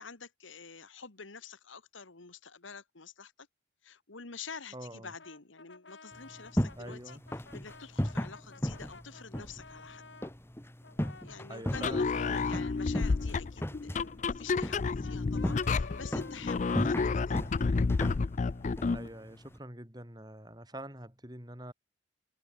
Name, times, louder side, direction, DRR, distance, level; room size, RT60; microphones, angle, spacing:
voice 1, 0.0-3.5 3.8-10.0 11.2-17.4, left 5 dB, 90° left, 1.8 m, -47 dB
voice 2, 4.7-5.1 6.8-7.2 11.5-12.6 16.7-17.1 18.9-21.7, right 1 dB, 20° right, 6.7 m, -45 dB
Brass instrument, 5.2-10.3 10.8-17.1, left 3 dB, 70° left, 2.7 m, -53 dB
sound 1, 6.1-19.6, equal, 10° left, 1.3 m, -38 dB
sound 2, 11.7-19.1, left 4 dB, 40° left, 0.4 m, -30 dB
head